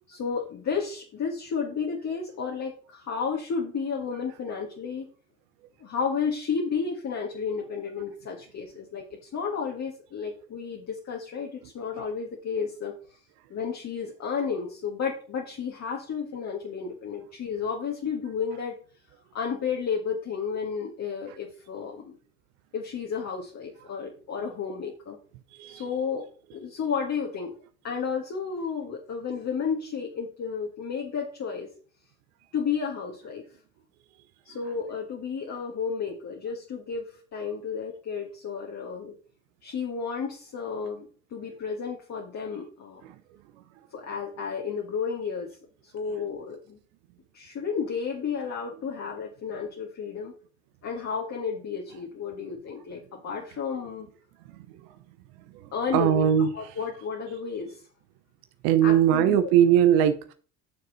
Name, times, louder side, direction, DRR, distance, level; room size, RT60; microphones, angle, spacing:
voice 1, 0.1-5.1 5.8-13.2 13.5-18.7 19.3-22.1 22.7-25.2 25.7-27.6 27.8-31.7 32.5-33.4 34.5-39.2 39.6-43.0 43.9-45.6 45.8-46.8 47.3-50.3 50.8-54.1 55.7-56.3 56.5-57.8 58.8-59.5, left 6 dB, 40° left, 0 dB, 1.8 m, -32 dB
voice 2, 55.5-56.5 58.6-60.3, right 10 dB, 65° right, 10 dB, 0.8 m, -21 dB
9.5 x 6.6 x 4.0 m, 0.41 s
figure-of-eight pair, 55°, 40 cm